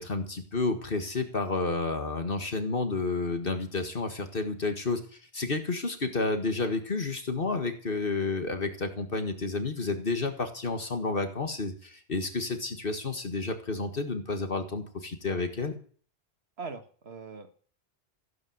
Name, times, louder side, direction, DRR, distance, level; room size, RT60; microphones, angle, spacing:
voice 1, 0.0-15.8, left 3 dB, 60° left, 7 dB, 1.9 m, -31 dB
voice 2, 16.6-17.5, right 4 dB, 90° right, 9 dB, 1.7 m, -41 dB
16.0 x 8.7 x 7.9 m, 0.43 s
omnidirectional pair, 1.1 m